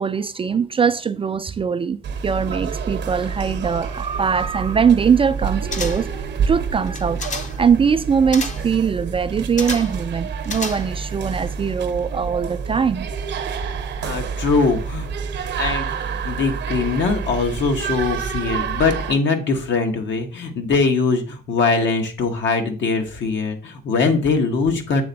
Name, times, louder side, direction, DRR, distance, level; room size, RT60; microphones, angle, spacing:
voice 1, 0.0-2.0 2.2-7.2 7.6-13.1, right 6 dB, 30° right, 0.3 m, -21 dB
sound 1, 2.0-19.1, right 6 dB, 65° right, 0.8 m, -28 dB
sound 2, 5.7-6.2 6.9-7.7 8.3-8.7 9.6-10.0 10.4-11.1 11.4-11.5, left 4 dB, 35° left, 0.8 m, -31 dB
voice 2, 14.0-15.1 15.6-25.0, left 4 dB, 65° left, 1.2 m, -21 dB
7.7 x 3.4 x 4.0 m
cardioid pair, 90°, 20 cm